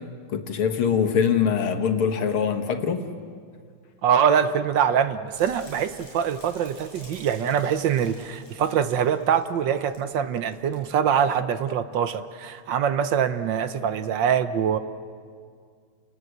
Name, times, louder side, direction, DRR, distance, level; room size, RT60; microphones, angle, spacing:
voice 1, 0.3-3.1, left 7 dB, 80° left, 5 dB, 2.3 m, -23 dB
voice 2, 4.0-14.8, right 8 dB, 65° right, 11 dB, 1.4 m, -24 dB
sound 1, 5.3-10.1 10.4-10.8 11.2-11.4, equal, 15° right, 7.9 m, -49 dB
29.5 x 19.5 x 8.0 m, 2.1 s
omnidirectional pair, 2.3 m